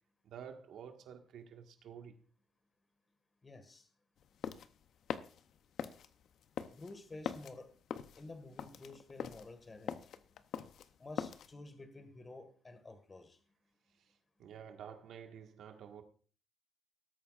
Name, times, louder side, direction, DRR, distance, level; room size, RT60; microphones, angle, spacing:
voice 1, 0.2-2.2 14.0-14.1 14.4-16.0, right 8 dB, 75° right, 1.6 m, -50 dB
voice 2, 3.4-3.9 6.7-7.7 8.1-10.1 11.0-13.4, left 2 dB, 30° left, 1.8 m, -51 dB
sound 1, 4.2-11.5, left 8 dB, 70° left, 0.7 m, -43 dB
19.0 x 8.8 x 2.5 m
cardioid pair, 90°, 0 cm